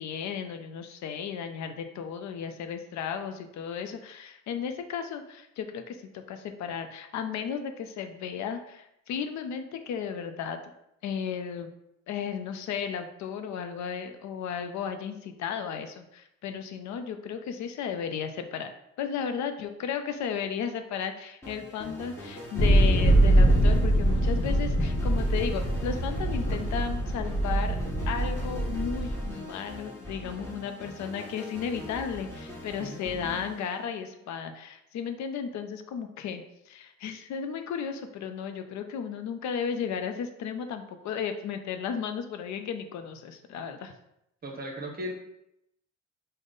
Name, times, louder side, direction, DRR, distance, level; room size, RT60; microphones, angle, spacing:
voice 1, 0.0-10.6 11.0-11.7 12.1-18.7 19.0-27.8 28.1-43.9, left 7 dB, 70° left, 7 dB, 0.4 m, -34 dB
sound 1, 21.4-34.3, left 1 dB, 10° left, 1.2 m, -43 dB
sound 2, 22.6-29.3, right 1 dB, 45° left, 0.8 m, -23 dB
voice 2, 44.4-45.1, equal, 30° right, 1 dB, 0.8 m, -36 dB
3.6 x 2.1 x 3.7 m, 0.81 s
cardioid pair, 90°, 30 cm